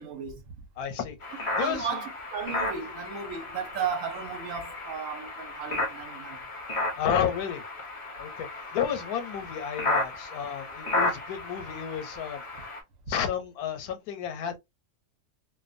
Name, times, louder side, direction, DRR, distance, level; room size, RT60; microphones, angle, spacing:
voice 1, 0.0-0.7 1.5-6.4 12.6-12.7, right 6 dB, 65° right, 1.0 m, -35 dB
voice 2, 0.8-1.9 7.0-7.6 8.2-12.4 13.1-14.6, left 8 dB, 85° left, 1.1 m, -31 dB
sound 1, 1.2-12.8, left 2 dB, 40° left, 0.4 m, -34 dB
2.5 x 2.2 x 2.5 m
omnidirectional pair, 1.6 m